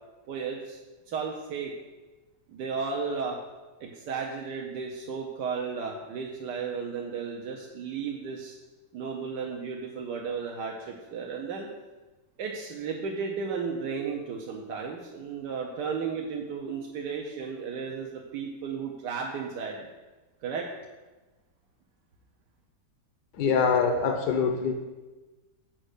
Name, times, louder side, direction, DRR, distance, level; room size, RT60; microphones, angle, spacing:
voice 1, 0.3-0.8 1.1-1.7 2.5-3.4 3.8-8.6 8.9-11.7 12.4-19.8 20.4-20.7, right 5 dB, 80° right, 0 dB, 1.5 m, -34 dB
voice 2, 23.4-24.7, left 5 dB, 75° left, 4 dB, 1.4 m, -24 dB
7.6 x 5.4 x 6.6 m, 1.2 s
omnidirectional pair, 1.8 m